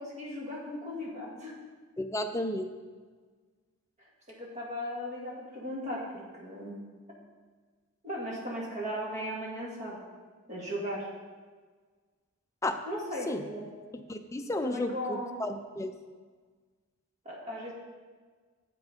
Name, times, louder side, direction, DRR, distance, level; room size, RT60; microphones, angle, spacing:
voice 1, 0.0-1.6 4.3-6.8 8.0-10.0 10.5-11.1 12.9-13.7 14.6-15.3 17.3-17.7, equal, 30° right, -4 dB, 1.8 m, -37 dB
voice 2, 2.0-2.7 12.6-12.8 13.3-13.4 14.1-15.9, left 1 dB, 15° left, 7 dB, 0.4 m, -33 dB
8.0 x 5.8 x 5.2 m, 1.5 s
head